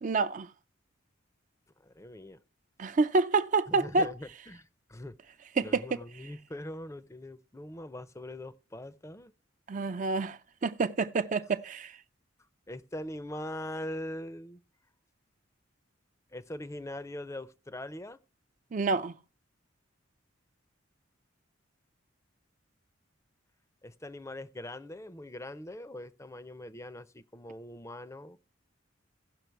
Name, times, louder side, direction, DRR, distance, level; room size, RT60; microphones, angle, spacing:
voice 1, 0.0-0.5 2.8-4.1 5.6-5.8 9.7-11.9 18.7-19.1, right 3 dB, 40° right, 0.4 m, -28 dB
voice 2, 1.8-2.4 3.7-5.1 5.6-9.3 12.7-14.6 16.3-18.2 23.8-28.4, left 1 dB, 15° left, 0.5 m, -42 dB
16.5 x 5.9 x 4.6 m
head